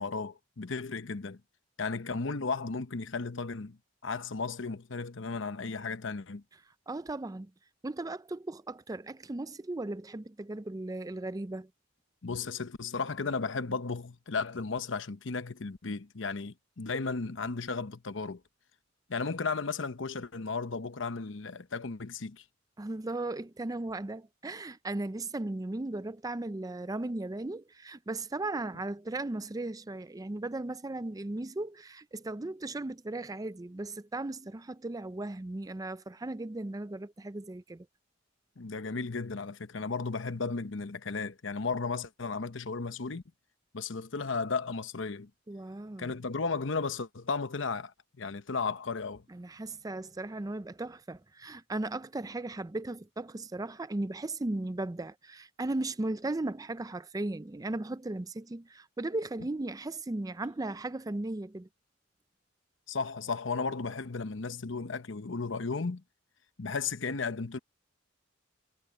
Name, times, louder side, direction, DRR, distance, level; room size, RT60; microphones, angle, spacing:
voice 1, 0.0-1.4 1.8-3.8 4.0-6.4 12.2-18.4 19.1-22.4 38.6-43.2 43.7-45.3 46.0-49.2 62.9-66.0 66.6-67.6, left 4 dB, 70° left, 0.9 m, -34 dB
voice 2, 6.9-7.5 7.8-11.7 22.8-37.9 45.5-46.2 49.3-61.7, right 2 dB, 20° right, 0.5 m, -36 dB
head